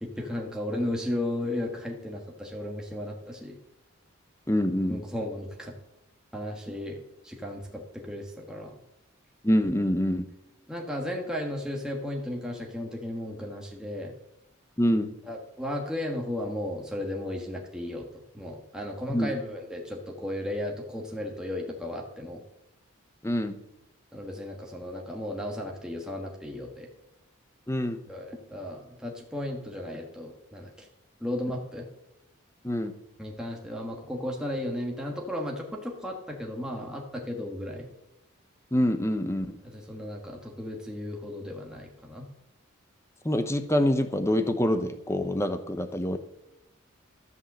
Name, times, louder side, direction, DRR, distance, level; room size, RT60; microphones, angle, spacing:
voice 1, 0.0-3.6 4.9-5.7 6.3-8.8 10.7-14.1 15.3-22.4 24.1-26.9 28.0-30.9 31.2-31.9 33.2-37.9 39.6-42.3, left 1 dB, 5° right, 0 dB, 1.5 m, -35 dB
voice 2, 4.5-5.0 9.4-10.3 14.8-15.1 19.1-19.3 23.2-23.6 27.7-28.0 32.6-32.9 38.7-39.6 43.2-46.2, equal, 15° left, 9 dB, 0.8 m, -25 dB
13.0 x 5.5 x 7.5 m, 0.89 s
head